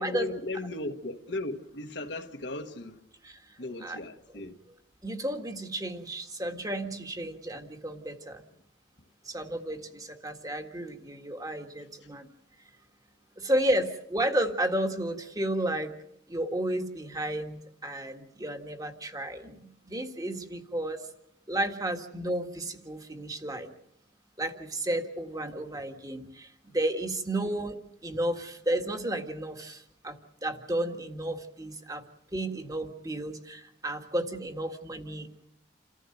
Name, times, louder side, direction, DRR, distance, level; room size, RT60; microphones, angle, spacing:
voice 1, 0.0-3.0 3.6-4.6 9.0-9.1 11.8-12.1 26.2-26.3 26.7-26.8, left 2 dB, 65° left, 1.4 m, -37 dB
voice 2, 5.0-8.4 9.3-12.3 13.4-15.9 16.3-21.1 21.5-23.7 24.4-27.8 28.0-32.0 32.3-35.3, right 1 dB, 20° right, 1.8 m, -32 dB
28.5 x 14.5 x 7.8 m
head